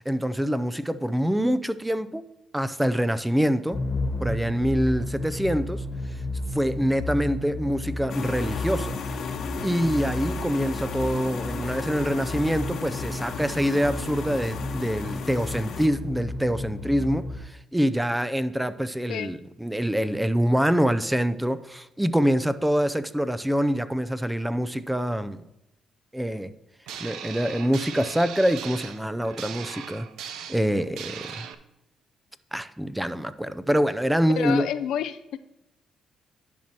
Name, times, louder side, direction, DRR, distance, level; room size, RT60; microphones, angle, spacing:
voice 1, 0.0-2.2 2.5-3.8 4.2-5.8 6.3-9.0 9.6-25.4 26.1-26.5 27.0-30.1 30.5-31.5 32.5-34.7, equal, 5° right, 0.5 m, -25 dB
sound 1, 3.7-17.4, left 2 dB, 20° left, 1.4 m, -32 dB
sound 2, 8.1-15.9, left 6 dB, 65° left, 1.0 m, -35 dB
sound 3, 26.9-31.5, right 8 dB, 85° right, 0.6 m, -39 dB
voice 2, 34.4-35.4, left 10 dB, 85° left, 0.4 m, -29 dB
10.5 x 6.1 x 2.9 m
cardioid pair, 90°, 0 cm